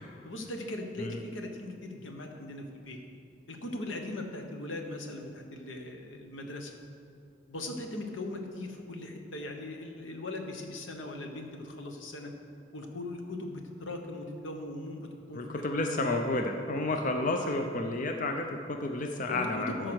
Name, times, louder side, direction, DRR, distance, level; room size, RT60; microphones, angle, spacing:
voice 1, 0.2-3.0 3.5-6.7 7.5-12.3 12.7-15.4 15.8-16.0 17.4-17.5 19.3-19.9, left 2 dB, 90° left, 3 dB, 1.2 m, -39 dB
voice 2, 15.3-19.9, left 2 dB, 45° left, 4 dB, 0.6 m, -31 dB
13.5 x 4.7 x 6.3 m, 2.5 s
head